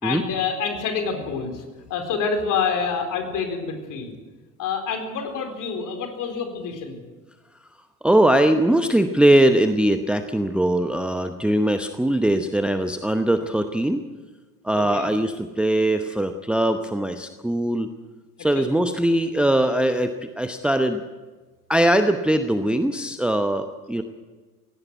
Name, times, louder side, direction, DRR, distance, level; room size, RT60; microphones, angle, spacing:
voice 1, 0.0-1.6 1.9-4.1 4.6-7.0 14.7-15.1 18.4-18.7, left 5 dB, 40° left, 5 dB, 4.1 m, -27 dB
voice 2, 8.0-14.0 14.6-17.9 18.4-21.0 21.7-24.0, right 1 dB, ahead, 8 dB, 0.8 m, -21 dB
17.0 x 17.0 x 9.4 m, 1.3 s
figure-of-eight pair, 70°, 47 cm